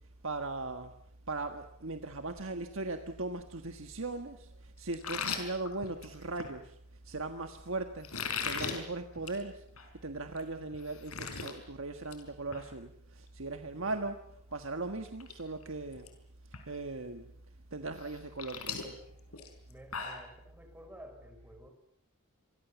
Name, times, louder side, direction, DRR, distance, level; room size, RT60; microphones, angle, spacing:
voice 1, 0.2-0.9 1.3-6.8 7.0-9.6 10.0-14.2 14.5-16.1 16.7-17.3 17.7-19.0, right 3 dB, 65° right, 6 dB, 1.5 m, -38 dB
sound 1, 4.9-6.5 8.0-8.8 9.2-9.4 9.8-9.9 10.4-10.5 10.7-11.5 11.9-12.2 12.5-12.7 14.5-14.6 15.1-15.3 15.6-16.1 16.5-16.6 18.0-20.3, left 6 dB, 90° left, 5.0 m, -38 dB
voice 2, 13.6-14.0 19.7-21.7, equal, 10° right, 5 dB, 6.0 m, -52 dB
28.5 x 23.5 x 7.1 m, 0.71 s
head